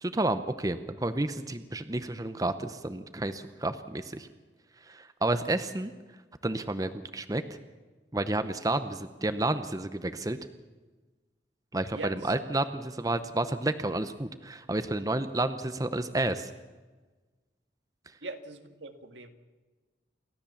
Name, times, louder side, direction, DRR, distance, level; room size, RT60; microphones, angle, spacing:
voice 1, 0.0-4.3 4.9-5.9 6.4-7.4 8.1-10.4 11.7-16.5, right 2 dB, 20° right, 10 dB, 0.8 m, -30 dB
voice 2, 11.9-12.3 18.2-19.3, right 2 dB, 85° right, 7 dB, 1.9 m, -41 dB
28.5 x 13.0 x 7.2 m, 1.3 s
head